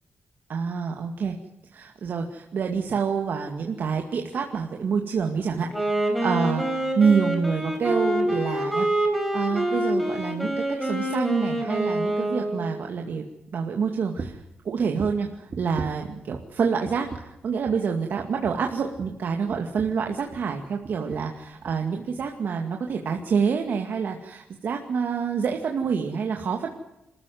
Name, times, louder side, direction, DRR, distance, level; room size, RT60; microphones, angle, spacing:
voice 1, 0.5-1.3 1.7-5.7 6.0-8.9 9.3-13.2 13.5-26.7, right 6 dB, 60° right, 2 dB, 2.2 m, -27 dB
Wind instrument woodwind instrument, 5.6-12.8, right 1 dB, ahead, 4.8 m, -26 dB
sound 1, 14.2-14.5 14.9-16.6 16.8-17.4 17.6-17.9 18.2-20.6 20.8-21.3 21.6-21.8 22.2-22.3, right 4 dB, 40° right, 1.8 m, -39 dB
26.5 x 14.5 x 9.4 m, 0.89 s
wide cardioid pair, 180°, 4 cm